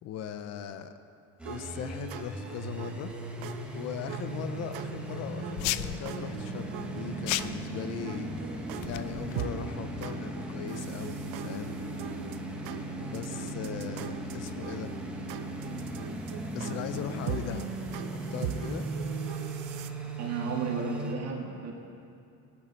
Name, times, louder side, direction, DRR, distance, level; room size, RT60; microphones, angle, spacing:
voice 1, 0.0-0.9 1.5-3.1 3.7-8.3 8.9-11.9 13.1-15.0 16.5-17.7 18.1-18.9, left 8 dB, 40° left, 10 dB, 0.7 m, -39 dB
sound 1, 1.4-21.1, right 2 dB, 5° right, 1.3 m, -37 dB
sound 2, 1.4-19.9, right 9 dB, 65° right, 0.8 m, -42 dB
sound 3, 5.6-6.0 7.3-7.7 8.8-9.4, left 16 dB, 85° left, 0.6 m, -33 dB
voice 2, 20.2-21.7, right 5 dB, 40° right, -1 dB, 1.9 m, -33 dB
18.5 x 11.0 x 4.4 m, 2.6 s
cardioid pair, 145°, 39 cm